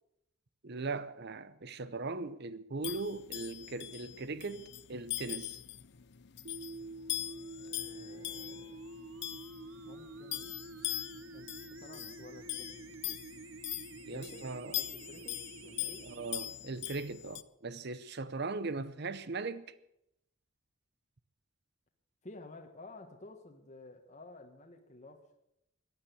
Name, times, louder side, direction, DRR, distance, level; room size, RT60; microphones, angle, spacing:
voice 1, 0.6-5.6 14.1-14.7 16.0-19.7, right 3 dB, 55° right, 0.7 m, -39 dB
sound 1, 2.8-17.4, left 14 dB, 55° left, 0.7 m, -42 dB
sound 2, 6.4-16.5, right 2 dB, 85° right, 1.0 m, -48 dB
voice 2, 7.6-8.8 9.8-10.6 11.3-13.2 14.1-16.0 22.2-25.4, left 2 dB, 35° left, 1.5 m, -53 dB
15.5 x 10.0 x 8.4 m
head